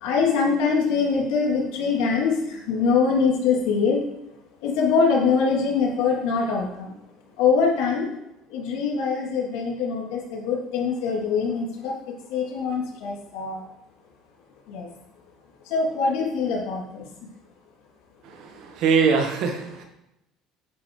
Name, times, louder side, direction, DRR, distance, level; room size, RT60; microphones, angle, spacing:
voice 1, 0.0-4.0 4.6-6.9 7.4-8.1 8.5-11.9 12.3-13.6 14.7-14.9 15.6-17.1, left 5 dB, 85° left, -3 dB, 3.0 m, -23 dB
voice 2, 18.2-19.8, right 5 dB, 55° right, 4 dB, 1.5 m, -23 dB
9.9 x 8.0 x 3.3 m, 0.86 s
cardioid pair, 160°, 0 cm